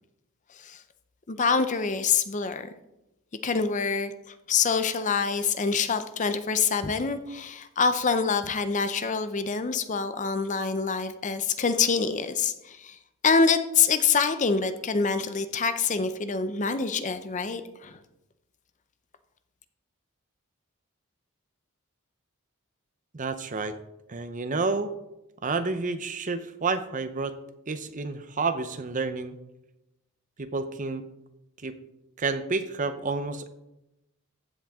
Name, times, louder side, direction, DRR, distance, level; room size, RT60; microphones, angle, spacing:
voice 1, 1.3-2.7 3.4-13.0 13.2-18.0, left 5 dB, 35° left, 10 dB, 0.6 m, -26 dB
voice 2, 23.1-23.7 24.1-24.9 25.4-27.3 27.7-29.3 30.4-31.0 31.6-31.7 32.2-33.5, right 4 dB, 35° right, 10 dB, 0.7 m, -29 dB
14.5 x 7.6 x 3.6 m, 0.91 s
head